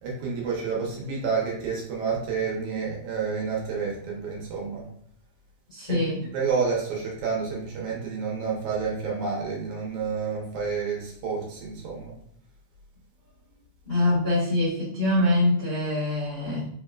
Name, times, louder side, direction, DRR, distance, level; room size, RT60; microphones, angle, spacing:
voice 1, 0.0-4.8 5.9-6.0 6.3-12.1, right 5 dB, 70° right, -3 dB, 2.1 m, -29 dB
voice 2, 5.7-6.2 13.8-16.7, left 1 dB, 45° left, -11 dB, 0.7 m, -24 dB
4.9 x 3.5 x 2.3 m, 0.66 s
omnidirectional pair, 3.9 m